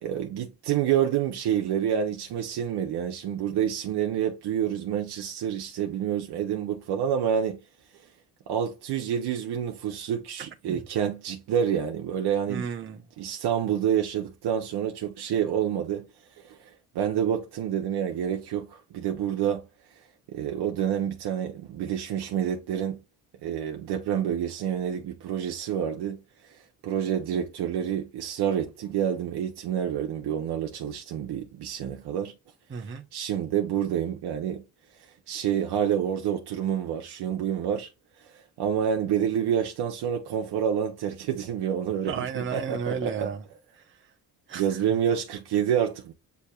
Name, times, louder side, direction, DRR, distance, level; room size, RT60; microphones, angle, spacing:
voice 1, 0.0-7.6 8.5-12.7 13.2-16.1 16.4-19.6 20.3-23.0 23.4-26.2 26.5-26.6 26.8-32.3 33.1-34.6 35.3-37.9 38.2-43.3 44.5-46.1, right 9 dB, 75° right, 0.8 m, -28 dB
voice 2, 12.5-13.0 32.7-33.0 42.0-43.4 43.8-44.1 44.5-44.8, right 6 dB, 30° right, 0.8 m, -33 dB
8.2 x 2.8 x 2.3 m
cardioid pair, 95°, 40 cm